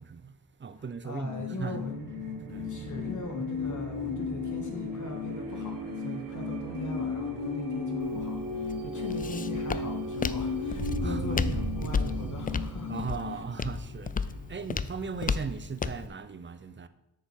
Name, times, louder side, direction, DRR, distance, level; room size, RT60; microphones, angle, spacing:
voice 1, 0.0-1.8 2.5-2.7 11.0-11.5 12.9-16.9, right 5 dB, 30° right, 0.6 m, -38 dB
voice 2, 1.0-2.1 2.6-12.9 13.3-13.4, left 2 dB, 45° left, 1.8 m, -40 dB
sound 1, 1.3-13.4, left 8 dB, 85° left, 0.8 m, -36 dB
sound 2, 1.5-14.9, right 3 dB, 50° right, 1.2 m, -38 dB
Walk footsteps, 8.0-16.1, left 5 dB, 25° left, 0.3 m, -34 dB
6.5 x 4.8 x 4.7 m
cardioid pair, 45°, 42 cm